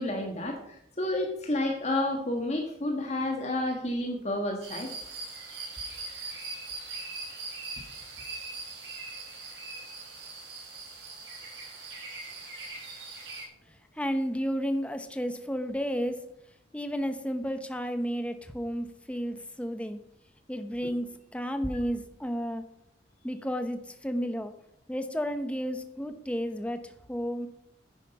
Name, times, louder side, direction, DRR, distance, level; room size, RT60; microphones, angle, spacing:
voice 1, 0.0-4.9, left 1 dB, 40° left, 2 dB, 1.6 m, -30 dB
sound 1, 4.6-13.4, right 3 dB, 85° right, 5.2 m, -41 dB
voice 2, 14.0-16.2 16.7-20.0 20.5-22.6 23.2-24.5 24.9-27.5, equal, 5° left, 8 dB, 0.9 m, -32 dB
10.0 x 9.8 x 5.5 m, 0.73 s
head